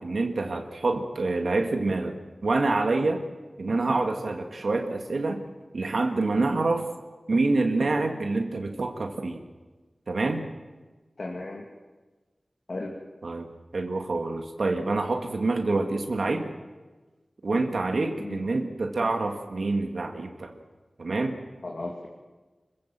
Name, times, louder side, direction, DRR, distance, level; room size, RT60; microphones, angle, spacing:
voice 1, 0.0-2.2 2.4-3.2 3.6-5.4 5.7-6.9 7.3-9.4 10.1-10.5 13.2-16.5 17.4-20.5 21.0-21.4, right 3 dB, 90° right, 4 dB, 2.0 m, -26 dB
voice 2, 11.2-11.7 12.7-13.0 18.2-18.5 21.6-22.1, left 2 dB, 65° left, 0 dB, 2.4 m, -35 dB
26.5 x 15.5 x 7.6 m, 1.3 s
wide cardioid pair, 70°, 0 cm